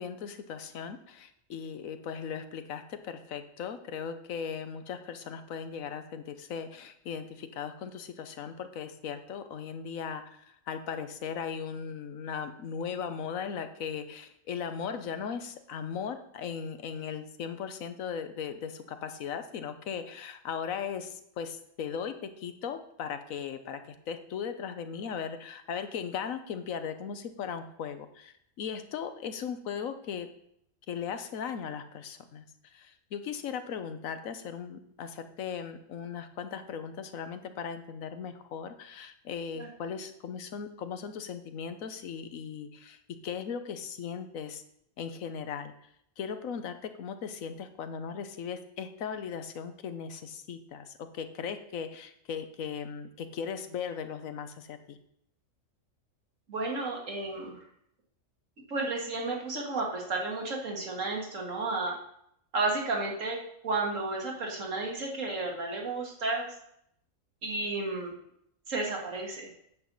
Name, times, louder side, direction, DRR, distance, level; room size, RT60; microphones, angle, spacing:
voice 1, 0.0-30.3 30.9-44.6 45.0-45.7 46.2-55.0, left 7 dB, 80° left, 9 dB, 1.2 m, -38 dB
voice 2, 56.5-57.6 58.7-61.9 62.5-66.5 67.4-68.1 68.7-69.5, right 3 dB, 70° right, -1 dB, 2.2 m, -32 dB
9.4 x 7.7 x 4.0 m, 0.73 s
omnidirectional pair, 1.4 m